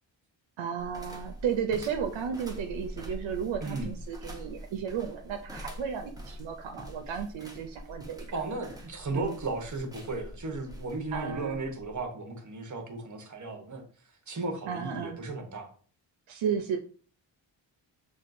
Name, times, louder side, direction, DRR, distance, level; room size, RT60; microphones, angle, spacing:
voice 1, 0.6-8.4 9.1-9.4 11.1-11.6 14.7-15.2 16.3-16.8, right 7 dB, 90° right, 0.5 m, -33 dB
sound 1, 0.8-12.0, equal, 10° right, 0.7 m, -44 dB
voice 2, 3.6-3.9 8.3-13.8 14.3-15.7, right 3 dB, 40° right, 0.9 m, -35 dB
6.0 x 2.3 x 2.5 m
wide cardioid pair, 125°, 46 cm